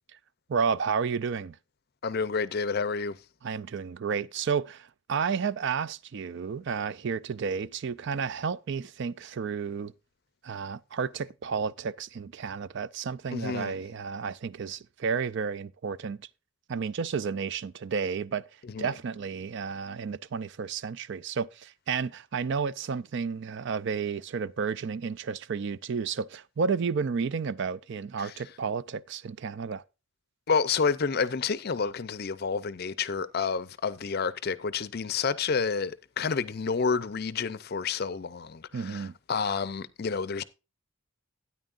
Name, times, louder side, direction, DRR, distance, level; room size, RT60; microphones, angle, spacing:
voice 1, 0.5-1.6 3.4-9.9 10.4-16.3 16.7-18.4 18.8-29.8 38.7-39.1, right 6 dB, 55° right, 0.4 m, -31 dB
voice 2, 2.0-3.2 13.3-13.8 18.7-18.9 28.2-28.3 30.5-40.4, left 5 dB, 45° left, 0.5 m, -29 dB
12.5 x 9.5 x 2.5 m
head